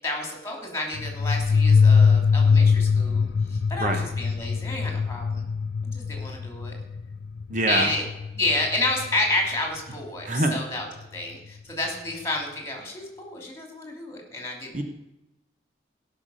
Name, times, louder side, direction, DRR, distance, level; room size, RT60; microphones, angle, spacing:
voice 1, 0.0-5.4 5.8-6.7 7.7-8.0 8.3-10.9 11.1-14.8, left 2 dB, 15° left, 1 dB, 3.0 m, -30 dB
sound 1, 0.9-9.3, left 5 dB, 70° left, 0.4 m, -22 dB
voice 2, 7.5-7.9 10.2-10.6 14.7-14.8, right 2 dB, 45° right, 5 dB, 1.1 m, -24 dB
17.0 x 6.0 x 6.4 m, 0.93 s
head